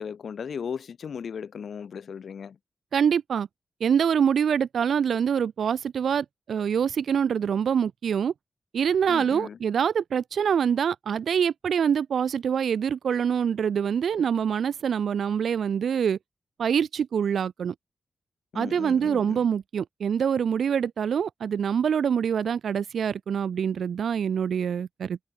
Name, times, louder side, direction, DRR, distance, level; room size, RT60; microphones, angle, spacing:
voice 1, 0.0-2.6 9.1-9.6 18.5-19.4, left 7 dB, 80° left, 1.7 m, -36 dB
voice 2, 2.9-3.5 3.8-8.3 8.7-16.2 16.6-17.7 18.5-25.2, right 7 dB, 90° right, 0.7 m, -25 dB
cardioid pair, 75°, 0 cm